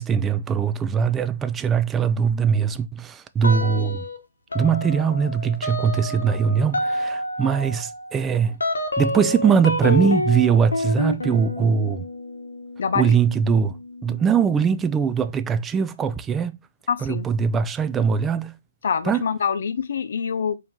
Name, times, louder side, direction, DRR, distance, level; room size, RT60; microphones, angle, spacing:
voice 1, 0.0-4.1 4.5-8.6 9.0-12.0 12.9-13.7 14.0-16.6 17.0-18.6 19.1-19.2, right 6 dB, 15° right, 0.3 m, -21 dB
sound 1, 3.4-4.2 4.5-14.8, left 1 dB, 90° left, 0.9 m, -29 dB
voice 2, 12.8-13.2 16.9-17.3 18.8-20.5, left 6 dB, 65° left, 0.6 m, -25 dB
4.4 x 2.8 x 3.5 m
hypercardioid pair, 140°, 0 cm